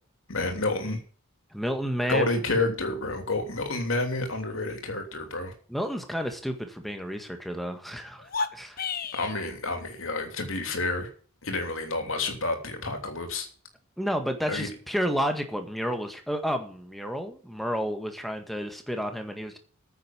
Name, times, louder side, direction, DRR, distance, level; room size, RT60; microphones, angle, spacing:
voice 1, 0.3-1.0 2.1-5.5 9.1-11.1 11.4-13.5 14.5-14.7, left 2 dB, 60° left, 4 dB, 3.2 m, -29 dB
voice 2, 1.5-2.2 5.7-8.8 14.0-19.6, equal, ahead, 6 dB, 1.8 m, -31 dB
sound 1, 8.2-9.4, left 5 dB, 40° left, 1.0 m, -31 dB
9.5 x 7.9 x 9.2 m, 0.43 s
head